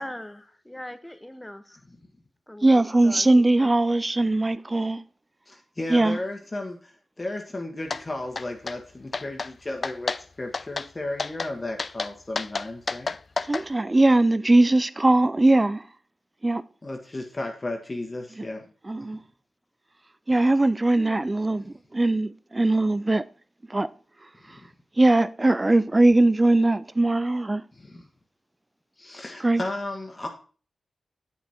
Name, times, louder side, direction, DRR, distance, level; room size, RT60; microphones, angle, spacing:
voice 1, 0.0-1.8 2.5-3.7 21.0-21.2, left 1 dB, 10° left, 0.8 m, -40 dB
voice 2, 2.6-5.0 5.9-6.2 13.5-15.9 16.4-16.6 18.9-19.2 20.3-21.6 21.9-23.2 23.7-23.9 25.0-27.6 29.4-29.6, right 2 dB, 25° right, 0.4 m, -20 dB
voice 3, 5.5-13.1 16.8-18.7 19.0-19.1 24.4-24.7 27.7-28.1 29.0-30.3, left 2 dB, 30° left, 1.6 m, -34 dB
sound 1, 7.9-8.0 8.4-8.8 9.1-9.5 9.8-10.2 10.5-10.9 11.2-11.5 11.8-13.6, left 4 dB, 50° left, 0.4 m, -30 dB
8.2 x 6.2 x 4.3 m
cardioid pair, 55°, 0 cm